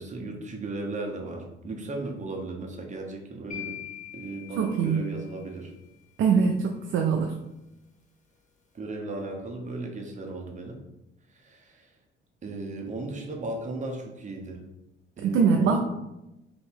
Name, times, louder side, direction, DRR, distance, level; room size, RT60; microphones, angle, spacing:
voice 1, 0.0-3.8 4.1-5.7 6.2-6.5 8.7-10.8 11.3-11.9 12.4-14.6 15.2-15.8, right 2 dB, 35° right, 2 dB, 0.9 m, -36 dB
sound 1, 3.5-5.6, left 11 dB, 35° left, 1.0 m, -42 dB
voice 2, 4.6-5.0 6.2-7.3 15.2-15.8, right 6 dB, 75° right, 2 dB, 0.4 m, -23 dB
3.1 x 2.7 x 4.5 m, 0.93 s
cardioid pair, 90°, 20 cm